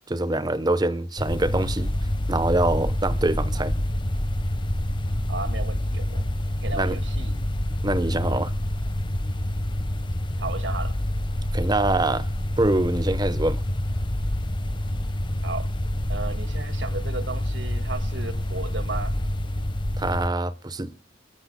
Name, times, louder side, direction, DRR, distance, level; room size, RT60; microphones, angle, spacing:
voice 1, 0.1-1.9 2.3-3.7 6.8-7.0 7.8-8.5 11.5-12.3 12.6-13.6 20.0-20.9, right 2 dB, 20° right, 0.9 m, -24 dB
sound 1, 1.2-20.3, left 1 dB, 25° left, 1.2 m, -27 dB
voice 2, 5.3-6.3 6.6-7.4 10.4-10.9 15.4-15.7 16.1-19.1, right 3 dB, 85° right, 1.9 m, -34 dB
28.0 x 14.5 x 2.2 m
head